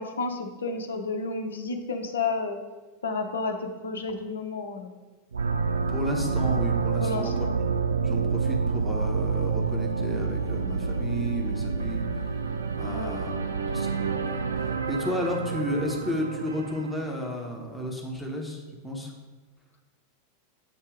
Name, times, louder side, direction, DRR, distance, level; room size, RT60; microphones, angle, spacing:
voice 1, 0.0-2.6 3.0-4.9 7.0-7.5 12.9-13.1, left 3 dB, 70° left, 5 dB, 0.7 m, -31 dB
sound 1, 5.3-17.3, right 5 dB, 75° right, 0.3 m, -28 dB
voice 2, 5.9-7.5 8.0-12.0 12.8-13.4 13.7-13.9 14.3-19.1, equal, 5° left, -1 dB, 1.0 m, -32 dB
8.1 x 2.7 x 4.9 m, 1.2 s
figure-of-eight pair, 90°, 0 cm